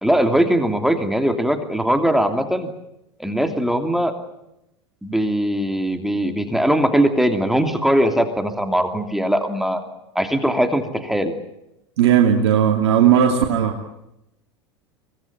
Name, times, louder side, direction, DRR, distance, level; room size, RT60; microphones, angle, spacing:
voice 1, 0.0-2.7 3.2-4.1 5.0-9.8 10.1-11.3, right 1 dB, ahead, 6 dB, 2.9 m, -20 dB
voice 2, 12.0-13.7, right 9 dB, 75° right, 2 dB, 2.7 m, -16 dB
24.5 x 19.5 x 9.5 m, 0.86 s
hypercardioid pair, 90°, 14 cm